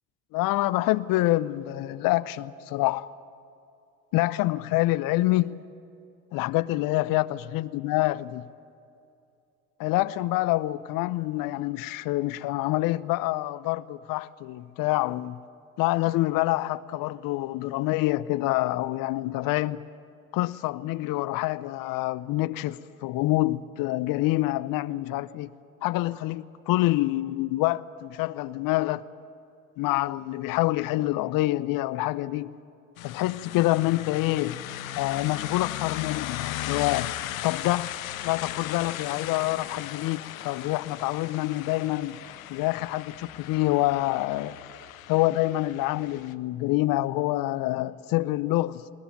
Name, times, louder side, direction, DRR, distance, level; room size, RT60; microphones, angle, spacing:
voice 1, 0.3-3.1 4.1-5.6 6.3-8.4 9.8-15.4 15.8-19.8 20.3-25.5 25.8-29.0 29.8-32.5 33.0-34.6 34.9-37.1 37.4-37.9 38.2-42.2 42.5-44.6 45.1-48.8, left 17 dB, 55° left, 0.7 m, -26 dB
sound 1, 33.0-46.3, left 13 dB, 85° left, 0.8 m, -37 dB
21.0 x 20.0 x 9.0 m
hypercardioid pair, 60°, 40 cm